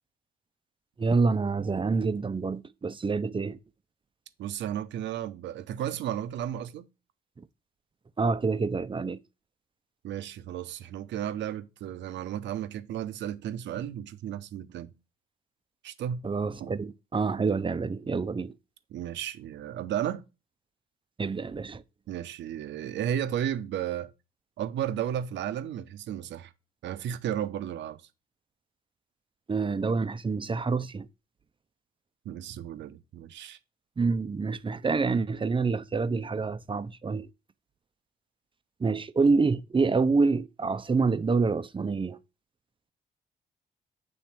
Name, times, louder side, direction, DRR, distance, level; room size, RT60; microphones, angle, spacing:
voice 1, 1.0-3.6 8.2-9.2 16.2-18.5 21.2-21.8 29.5-31.1 34.0-37.3 38.8-42.2, right 4 dB, 25° right, 0.6 m, -27 dB
voice 2, 4.4-6.9 10.0-14.9 15.8-16.7 18.9-20.2 22.1-24.1 24.6-26.5 26.8-28.0 32.2-33.6, right 10 dB, 75° right, 0.8 m, -34 dB
7.4 x 3.1 x 4.4 m
supercardioid pair, 60°, 19 cm